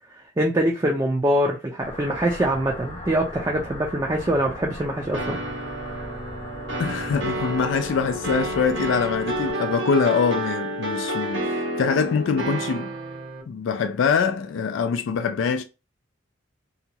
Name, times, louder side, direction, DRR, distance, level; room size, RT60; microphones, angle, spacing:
voice 1, 0.4-5.4, right 1 dB, 20° right, 0.4 m, -23 dB
sound 1, 1.8-9.5, left 1 dB, 35° left, 0.7 m, -39 dB
sound 2, 5.1-13.4, right 1 dB, 70° right, 0.9 m, -30 dB
voice 2, 6.8-11.5 11.8-12.9 13.5-15.6, left 5 dB, 85° left, 0.3 m, -24 dB
2.8 x 2.2 x 2.7 m
head